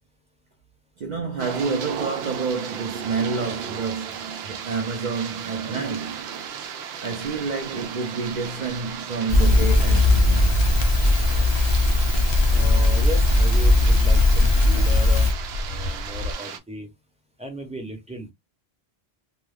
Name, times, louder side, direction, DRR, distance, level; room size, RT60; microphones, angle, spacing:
voice 1, 1.0-10.6, right 5 dB, 55° right, 0.6 m, -29 dB
sound 1, 1.4-16.6, right 8 dB, 85° right, 0.8 m, -35 dB
sound 2, 7.3-7.4 8.2-8.8 10.1-16.3, left 2 dB, 75° left, 0.9 m, -33 dB
Crackle, 9.3-15.3, left 2 dB, 35° left, 0.4 m, -18 dB
voice 2, 12.5-15.3 15.6-16.9 17.4-18.3, left 1 dB, 10° right, 0.6 m, -35 dB
2.4 x 2.2 x 3.2 m
omnidirectional pair, 1.1 m